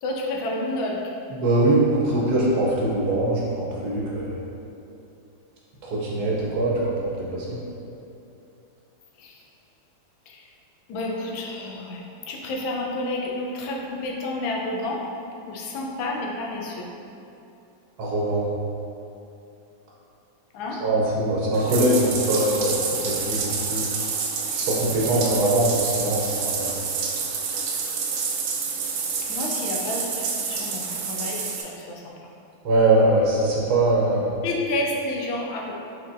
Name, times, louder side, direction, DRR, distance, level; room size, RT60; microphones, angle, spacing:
voice 1, 0.0-1.0 9.2-9.4 10.3-10.4 10.9-15.0 15.5-16.9 20.5-20.8 28.9-29.0 29.3-32.1 34.1-35.7, left 2 dB, 90° left, -1 dB, 1.4 m, -30 dB
voice 2, 1.3-4.3 5.8-7.6 18.0-18.5 20.8-22.7 23.0-23.8 24.5-26.7 32.6-34.3, right 1 dB, 60° right, -5 dB, 1.1 m, -22 dB
Bathtub (filling or washing), 21.5-31.6, right 5 dB, 85° right, 1.4 m, -28 dB
4.4 x 4.2 x 2.5 m, 2.8 s
omnidirectional pair, 2.1 m